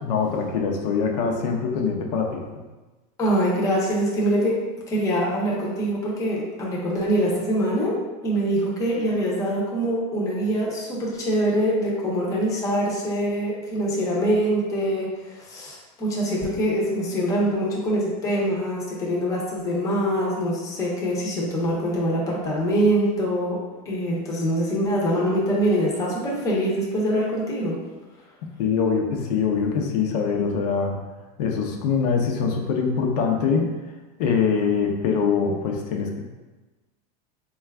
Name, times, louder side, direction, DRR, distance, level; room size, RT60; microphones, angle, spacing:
voice 1, 0.0-2.4 28.6-30.9 31.4-33.7 34.2-36.2, left 5 dB, 75° left, 1 dB, 0.6 m, -23 dB
voice 2, 3.2-4.6 4.9-8.0 8.2-23.6 23.9-27.8, equal, 15° left, -4 dB, 0.6 m, -24 dB
3.9 x 2.3 x 3.4 m, 1.2 s
supercardioid pair, 170°, 21 cm